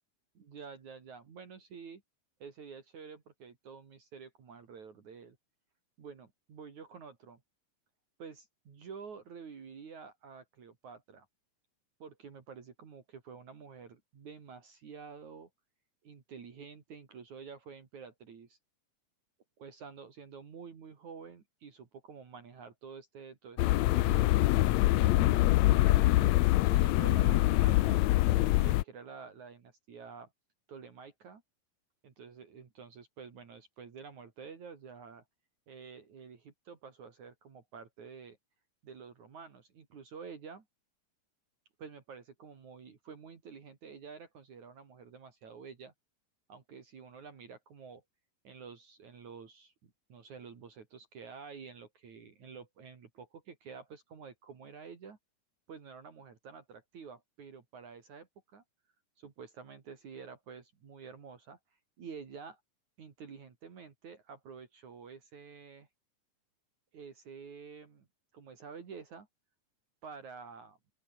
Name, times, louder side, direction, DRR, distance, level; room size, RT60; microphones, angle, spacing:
voice 1, 0.4-2.0 2.4-5.4 6.0-7.4 8.2-11.3 12.0-15.5 16.0-18.6 19.6-24.3 24.8-26.4 26.7-30.3 30.7-31.4 32.0-35.2 35.7-38.4 38.8-40.6 41.8-45.9 46.5-48.0 48.4-49.7 50.1-55.2 55.7-58.6 59.2-61.6 62.0-62.6 63.0-65.9 66.9-68.1 68.3-69.3 70.0-70.8, right 6 dB, 55° right, 4.3 m, -49 dB
sound 1, 23.6-28.8, left 17 dB, 90° left, 1.5 m, -24 dB
open air
omnidirectional pair, 4.0 m